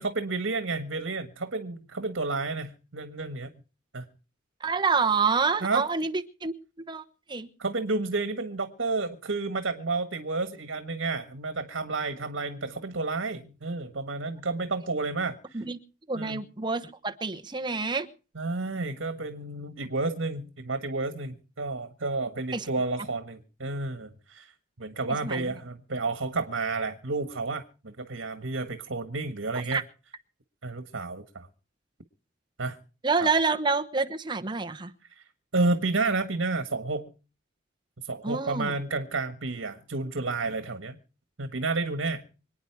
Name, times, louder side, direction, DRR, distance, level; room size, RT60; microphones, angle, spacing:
voice 1, 0.0-3.5 3.9-4.1 5.6-5.9 7.6-15.6 16.1-16.4 18.3-24.5 24.8-29.8 30.6-31.5 32.6-32.8 33.2-33.3 35.2-35.3 35.5-37.1 38.0-41.0 41.4-42.2, right 3 dB, 80° right, 9 dB, 1.5 m, -31 dB
voice 2, 4.6-6.5 6.9-7.0 7.3-7.5 15.5-15.8 16.1-18.1 22.5-22.7 25.2-25.5 29.7-29.8 33.0-34.9 38.2-38.7, right 4 dB, 25° right, 6 dB, 1.0 m, -27 dB
26.0 x 9.5 x 4.7 m, 0.36 s
head